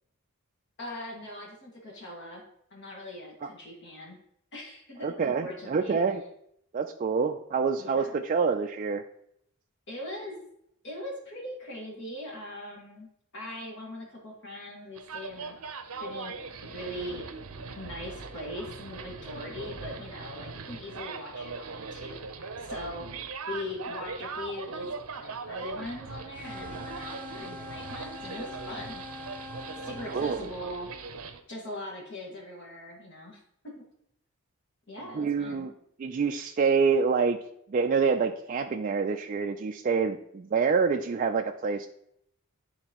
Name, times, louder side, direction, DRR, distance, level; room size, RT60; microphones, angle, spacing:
voice 1, 0.8-2.4 2.7-4.2 4.5-6.0 7.8-8.2 9.9-10.4 10.8-13.1 13.3-15.6 16.0-16.3 16.6-17.2 17.7-23.1 23.5-29.0 29.8-30.9 31.5-33.8 34.9-35.7, left 1 dB, 55° left, -1 dB, 1.8 m, -41 dB
voice 2, 5.0-6.2 6.7-9.0 30.1-30.5 35.1-35.7 36.0-37.4 37.7-41.9, right 5 dB, 35° right, 4 dB, 0.3 m, -26 dB
sound 1, 15.0-31.4, right 4 dB, 70° right, 0.7 m, -40 dB
sound 2, 26.3-30.5, left 2 dB, 10° left, 1.0 m, -43 dB
10.5 x 4.0 x 2.9 m, 0.73 s
head